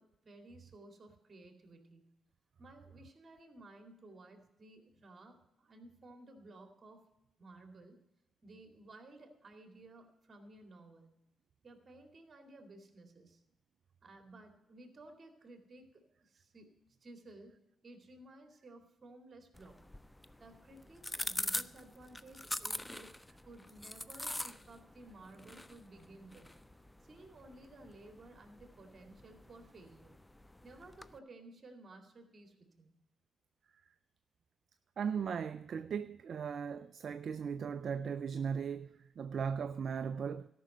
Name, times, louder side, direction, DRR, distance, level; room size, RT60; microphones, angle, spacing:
voice 1, 0.0-2.0 2.6-7.1 7.4-8.0 8.4-11.1 11.6-13.4 14.0-16.7 17.0-17.6 17.8-19.8 20.4-23.2 23.4-26.5 27.1-30.2 30.6-32.9, right 2 dB, 40° right, 2.3 m, -56 dB
sound 1, 19.5-31.2, left 1 dB, 10° left, 0.5 m, -44 dB
voice 2, 35.0-38.9 39.2-40.5, right 6 dB, 60° right, 0.4 m, -37 dB
13.0 x 6.0 x 7.8 m
supercardioid pair, 65°, 0 cm